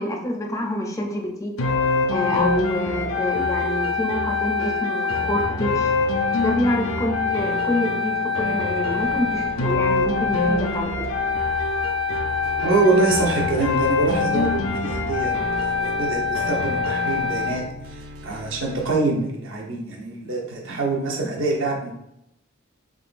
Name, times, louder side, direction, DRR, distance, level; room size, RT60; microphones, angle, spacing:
voice 1, 0.0-1.5 2.1-5.9 6.4-10.9, left 1 dB, 15° left, 1 dB, 0.4 m, -27 dB
sound 1, 1.6-17.6, left 4 dB, 75° left, 0.5 m, -24 dB
sound 2, 9.0-18.9, right 1 dB, 45° right, 0.3 m, -42 dB
voice 2, 12.6-15.5 15.8-17.6 17.9-21.9, right 3 dB, 65° right, -1 dB, 0.8 m, -24 dB
3.6 x 3.0 x 2.4 m, 0.81 s
head